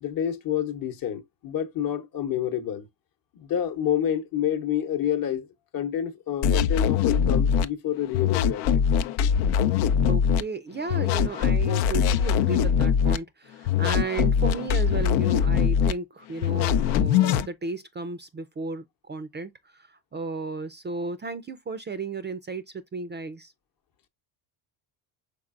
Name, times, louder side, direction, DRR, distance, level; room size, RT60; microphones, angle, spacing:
voice 1, 0.0-2.9 3.3-5.5 5.7-8.9, left 10 dB, 45° left, 1.0 m, -28 dB
sound 1, 6.4-7.7 8.1-10.4 10.9-13.2 13.7-15.9 16.4-17.5, left 8 dB, 75° left, 0.6 m, -22 dB
voice 2, 10.1-23.5, right 3 dB, 25° right, 0.5 m, -34 dB
5.2 x 3.9 x 2.4 m
supercardioid pair, 90°, 47 cm